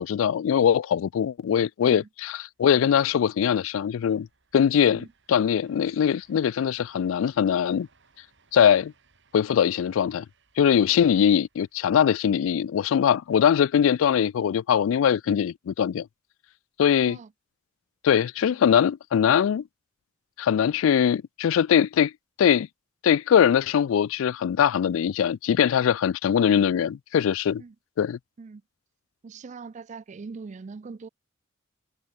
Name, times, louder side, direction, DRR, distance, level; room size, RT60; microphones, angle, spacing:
voice 1, 0.0-4.3 4.5-7.9 8.5-8.9 9.3-10.3 10.6-16.1 16.8-17.2 18.0-19.7 20.4-22.1 22.4-22.7 23.0-27.6 28.0-28.2, left 8 dB, 70° left, 0.3 m, -22 dB
sound 1, 2.5-14.5, right 4 dB, 65° right, 6.4 m, -66 dB
voice 2, 29.2-31.1, right 4 dB, 35° right, 0.4 m, -41 dB
head